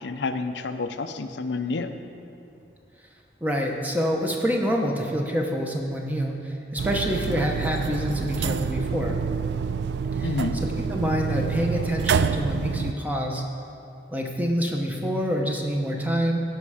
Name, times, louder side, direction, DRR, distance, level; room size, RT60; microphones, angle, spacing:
voice 1, 0.0-1.9 10.2-10.6, left 3 dB, 80° left, 8 dB, 0.5 m, -29 dB
voice 2, 3.4-9.2 10.1-10.3 10.6-13.4 14.1-16.4, equal, 10° right, 1 dB, 0.9 m, -26 dB
sound 1, 6.8-12.9, right 6 dB, 70° right, 0.3 m, -27 dB
15.5 x 5.4 x 4.9 m, 2.6 s
head